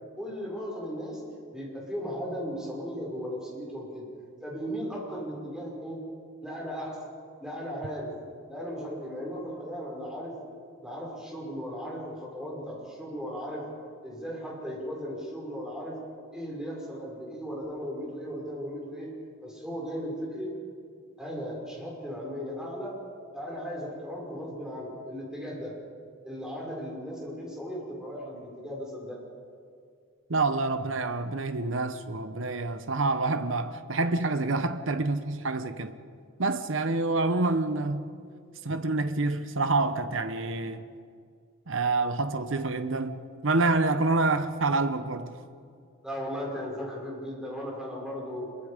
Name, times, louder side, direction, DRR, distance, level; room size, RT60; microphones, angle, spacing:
voice 1, 0.2-1.2 1.5-4.0 4.4-6.0 6.4-7.0 7.4-8.1 8.5-10.3 10.8-13.7 14.0-16.0 16.3-19.1 19.4-20.5 21.2-22.9 23.3-25.7 26.2-29.2 46.0-48.5, equal, 5° right, 5.9 m, -36 dB
voice 2, 30.3-35.9 36.4-38.1 38.6-40.8 41.7-45.3, right 3 dB, 65° right, 0.9 m, -27 dB
26.0 x 23.5 x 5.2 m
head